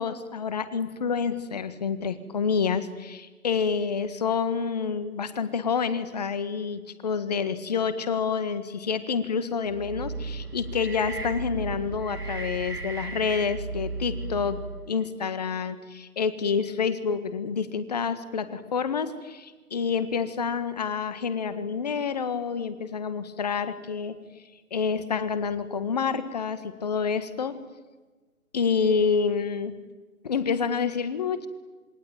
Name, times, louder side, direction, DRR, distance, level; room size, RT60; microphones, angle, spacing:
voice 1, 0.0-24.2 24.7-27.6 28.5-29.8 30.2-31.5, left 6 dB, 25° left, 12 dB, 1.7 m, -28 dB
sound 1, 9.6-15.0, right 3 dB, 85° right, 1.4 m, -35 dB
27.5 x 23.0 x 9.1 m, 1.3 s
figure-of-eight pair, 150°, 45 cm